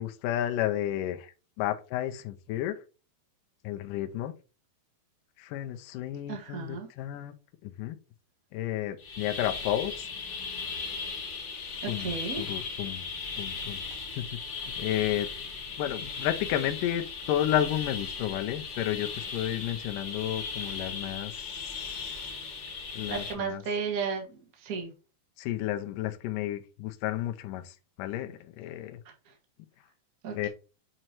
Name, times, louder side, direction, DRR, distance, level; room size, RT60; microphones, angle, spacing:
voice 1, 0.0-2.8 3.6-4.3 5.4-7.3 7.6-8.0 8.5-10.1 11.9-13.1 13.4-15.3 15.8-22.3 22.9-23.6 25.4-29.0 30.3-30.5, left 12 dB, 80° left, 7 dB, 2.1 m, -32 dB
voice 2, 6.3-6.9 11.8-12.4 23.1-24.9 29.2-29.3 30.2-30.4, right 6 dB, 70° right, 1 dB, 0.8 m, -34 dB
sound 1, 9.0-23.3, left 5 dB, 60° left, 1.3 m, -37 dB
7.5 x 3.0 x 4.4 m, 0.33 s
omnidirectional pair, 4.2 m